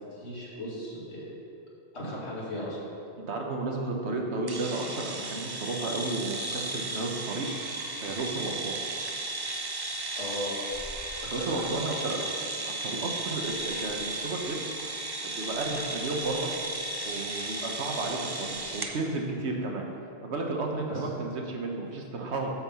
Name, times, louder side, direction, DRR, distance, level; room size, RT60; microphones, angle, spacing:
voice 1, 0.1-1.3 1.9-2.8 10.1-10.5 11.2-12.2 20.8-21.0, left 1 dB, 80° left, -6 dB, 2.5 m, -37 dB
voice 2, 3.3-7.8 8.0-8.8 11.3-12.2 12.6-14.6 15.2-16.5 17.0-19.9 20.2-22.5, right 3 dB, 90° right, 1 dB, 1.4 m, -33 dB
sound 1, 4.5-19.0, right 2 dB, 30° right, 0.5 m, -35 dB
8.6 x 5.6 x 6.9 m, 2.7 s
omnidirectional pair, 1.1 m